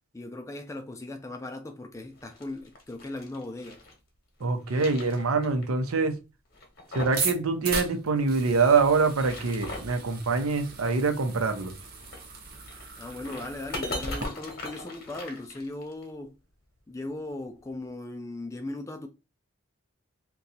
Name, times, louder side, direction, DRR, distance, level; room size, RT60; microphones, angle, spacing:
voice 1, 0.1-3.8 13.0-16.4 16.9-19.1, left 2 dB, 15° left, 0.3 m, -38 dB
sound 1, 2.1-3.9 4.4-5.6 5.9-6.0 6.5-7.3 7.6-7.7 8.9-10.0 12.0-16.0, left 2 dB, 45° left, 0.9 m, -40 dB
voice 2, 4.4-6.2 6.9-11.7, right 4 dB, 85° right, 0.6 m, -25 dB
sound 2, 7.2-14.3, right 4 dB, 45° right, 0.6 m, -37 dB
2.7 x 2.3 x 3.9 m
head